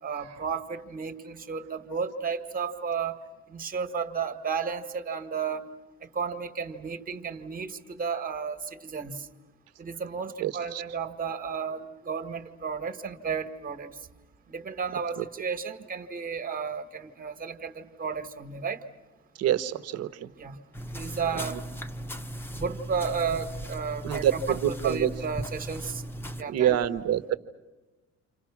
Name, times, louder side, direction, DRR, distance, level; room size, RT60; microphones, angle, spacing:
voice 1, 0.0-3.2 3.5-5.7 6.0-9.3 9.8-14.0 14.5-18.8 20.3-20.6 20.9-21.6 22.5-26.0 26.4-27.0, right 6 dB, 30° right, 8 dB, 1.6 m, -33 dB
voice 2, 10.4-10.8 15.2-15.3 19.4-20.3 21.5-21.6 24.0-25.1 26.4-27.4, right 10 dB, 60° right, 11 dB, 1.3 m, -27 dB
sound 1, 20.7-26.4, right 1 dB, 10° left, 0.9 m, -37 dB
29.0 x 27.0 x 6.1 m, 1.1 s
cardioid pair, 170°, 29 cm